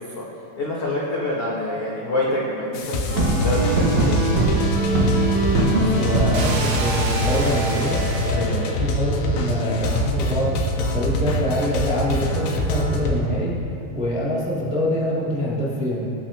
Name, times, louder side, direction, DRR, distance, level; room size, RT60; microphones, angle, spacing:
voice 1, 0.6-2.8 3.1-4.2 8.3-8.6, left 2 dB, 70° left, -5 dB, 1.4 m, -26 dB
sound 1, 2.7-13.2, left 1 dB, 85° left, 3.7 m, -24 dB
sound 2, 3.1-8.4, right 2 dB, 70° right, 1.6 m, -22 dB
voice 2, 5.8-10.6 10.9-13.5 13.9-16.0, equal, 5° right, -7 dB, 1.2 m, -25 dB
18.5 x 14.5 x 3.0 m, 2.8 s
omnidirectional pair, 5.2 m